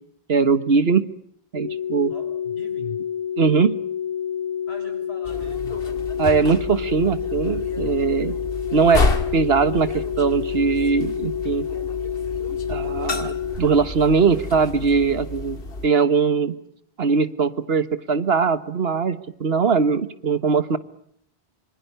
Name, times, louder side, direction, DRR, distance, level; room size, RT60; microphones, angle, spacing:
voice 1, 0.3-1.1 1.5-2.1 3.4-3.8 6.2-8.3 8.7-9.0 9.3-11.6 12.7-15.6 15.8-16.5 17.0-20.8, right 5 dB, 75° right, 13 dB, 1.6 m, -20 dB
sound 1, 1.5-13.6, left 8 dB, 40° right, 2.4 m, -28 dB
voice 2, 2.1-3.0 4.7-5.8, left 2 dB, 80° left, 6 dB, 6.7 m, -40 dB
sound 2, 5.2-15.9, left 2 dB, 65° left, 2.1 m, -30 dB
26.0 x 25.0 x 6.8 m, 0.68 s
omnidirectional pair, 1.0 m